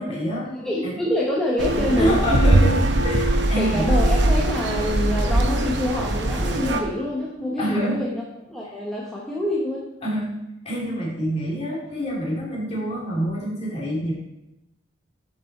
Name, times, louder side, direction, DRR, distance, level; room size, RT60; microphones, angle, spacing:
voice 1, 0.0-0.5 0.8-1.0 2.0-3.9 7.4-8.1 10.0-14.1, equal, 30° left, -5 dB, 2.8 m, -26 dB
voice 2, 0.5-2.2 3.6-8.2 8.5-9.8, left 1 dB, 5° left, -5 dB, 0.9 m, -26 dB
sound 1, 1.6-6.8, right 1 dB, 65° right, 0.9 m, -21 dB
7.3 x 6.1 x 4.3 m, 0.92 s
head